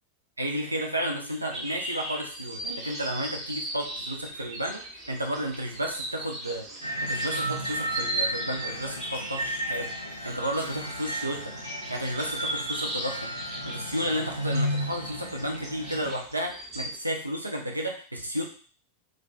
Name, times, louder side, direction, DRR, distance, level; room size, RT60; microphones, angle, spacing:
voice 1, 0.4-6.7 7.0-9.9 10.2-11.5 11.9-13.3 13.6-18.4, equal, 85° right, 0 dB, 0.5 m, -32 dB
sound 1, 1.3-17.0, right 1 dB, 25° right, 0.7 m, -38 dB
sound 2, 6.8-16.1, equal, 90° left, 0.4 m, -34 dB
2.4 x 2.3 x 2.2 m, 0.41 s
figure-of-eight pair, 90°, 0 cm